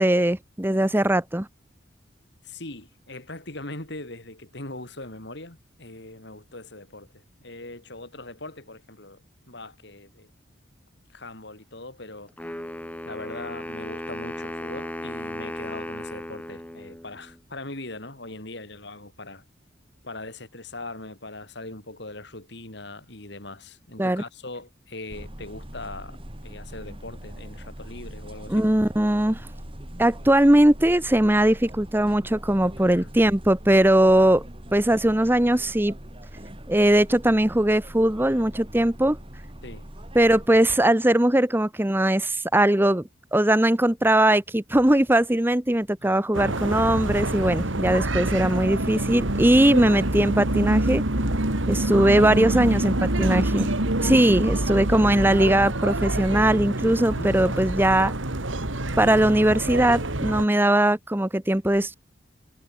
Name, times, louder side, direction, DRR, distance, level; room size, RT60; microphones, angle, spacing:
voice 1, 0.0-1.5 24.0-24.2 28.5-29.5 30.0-34.5 34.7-35.9 36.7-39.2 40.1-43.0 43.3-51.0 51.7-53.7 54.0-58.1 59.0-61.9, right 1 dB, 10° right, 0.9 m, -20 dB
voice 2, 2.4-10.3 11.1-12.6 13.1-19.4 20.0-26.2 26.4-28.7 32.6-33.1 34.1-34.3 39.6-39.9 46.0-46.7 52.2-52.7 54.2-54.5 57.2-57.7, left 2 dB, 60° left, 4.2 m, -41 dB
Wind instrument woodwind instrument, 12.4-17.4, left 1 dB, 10° left, 1.5 m, -36 dB
sound 1, 25.1-40.5, equal, 30° right, 3.6 m, -41 dB
sound 2, 46.3-60.4, right 1 dB, 80° right, 2.9 m, -26 dB
head